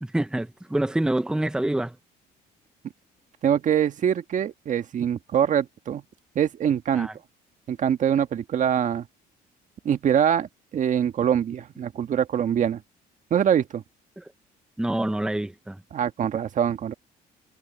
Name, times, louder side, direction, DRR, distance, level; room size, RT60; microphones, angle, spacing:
voice 1, 0.0-2.0 6.9-7.1 14.2-14.3 14.8-15.8, right 1 dB, 5° right, 0.8 m, -26 dB
voice 2, 3.4-6.0 6.3-7.1 7.7-9.0 9.8-12.8 13.3-13.8 15.9-16.9, right 9 dB, 50° right, 1.5 m, -24 dB
cardioid pair, 110°, 17 cm